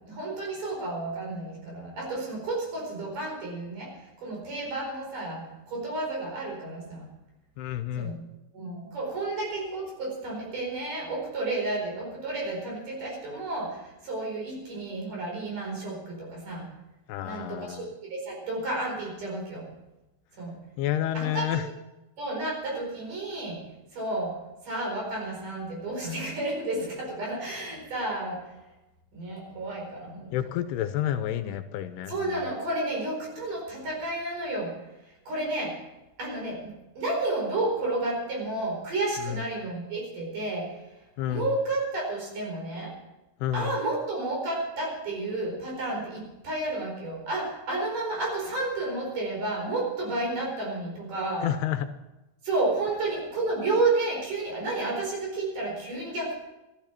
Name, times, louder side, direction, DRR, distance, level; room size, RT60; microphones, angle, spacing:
voice 1, 0.0-3.9 4.2-7.0 8.0-8.2 8.5-16.7 17.2-19.6 20.4-20.5 21.1-21.6 22.2-23.6 23.9-24.3 24.6-28.4 29.1-30.3 32.1-34.7 35.3-35.8 36.2-40.7 41.3-42.9 43.5-51.5 52.4-56.3, right 2 dB, 50° right, -1 dB, 5.9 m, -31 dB
voice 2, 7.6-8.2 17.1-17.9 20.8-21.7 30.3-32.5 39.2-39.4 41.2-41.5 43.4-43.7 51.4-51.9, left 11 dB, 80° left, 10 dB, 2.6 m, -30 dB
14.5 x 13.0 x 5.9 m, 0.99 s
omnidirectional pair, 4.8 m